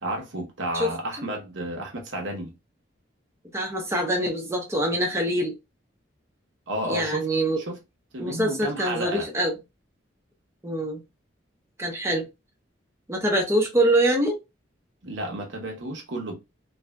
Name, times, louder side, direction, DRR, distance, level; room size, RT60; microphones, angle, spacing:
voice 1, 0.0-2.5 6.7-7.3 7.6-7.8 8.1-9.3 15.0-16.3, right 1 dB, 80° right, 0.9 m, -32 dB
voice 2, 3.5-5.5 6.8-7.6 8.2-9.6 10.6-11.0 11.8-12.3 13.1-14.4, right 1 dB, 15° right, 0.6 m, -24 dB
2.7 x 2.6 x 2.2 m
head